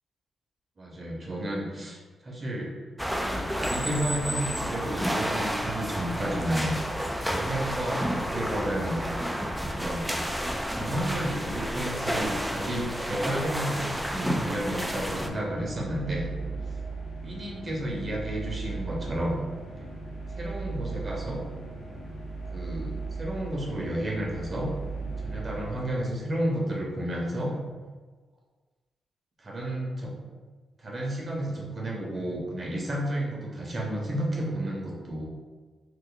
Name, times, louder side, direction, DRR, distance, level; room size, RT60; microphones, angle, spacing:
voice 1, 0.8-2.7 3.2-6.8 7.3-9.0 9.6-10.1 10.6-16.3 17.2-19.4 20.3-21.4 22.5-24.7 25.2-27.5 29.4-30.1 30.8-35.3, right 1 dB, 35° right, -2 dB, 0.8 m, -32 dB
sound 1, 3.0-15.3, equal, ahead, 0.3 m, -31 dB
sound 2, 14.6-26.5, right 3 dB, 55° left, 1.0 m, -37 dB
3.1 x 2.0 x 3.8 m, 1.4 s
cardioid pair, 85°, 0 cm